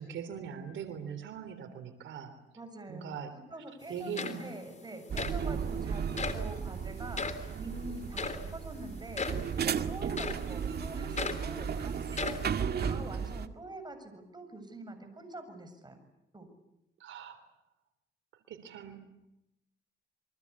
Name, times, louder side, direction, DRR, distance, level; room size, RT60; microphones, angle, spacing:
voice 1, 0.0-2.4 2.9-3.3 3.9-4.5 17.0-17.4 18.5-19.0, right 7 dB, 75° right, 8 dB, 3.5 m, -41 dB
voice 2, 2.6-3.1 3.5-16.0 16.3-16.5, right 2 dB, 20° right, 7 dB, 7.6 m, -45 dB
sound 1, 3.8-3.9 4.2-4.7 5.2-5.4 6.2-6.5 7.1-7.5 8.2-8.5 9.2-9.5 10.2-10.5 11.2-11.5 12.1-12.5, left 4 dB, 35° left, 3.4 m, -36 dB
sound 2, 5.1-13.5, right 7 dB, 55° right, 2.1 m, -35 dB
29.0 x 24.0 x 8.5 m, 0.88 s
cardioid pair, 90°, 20 cm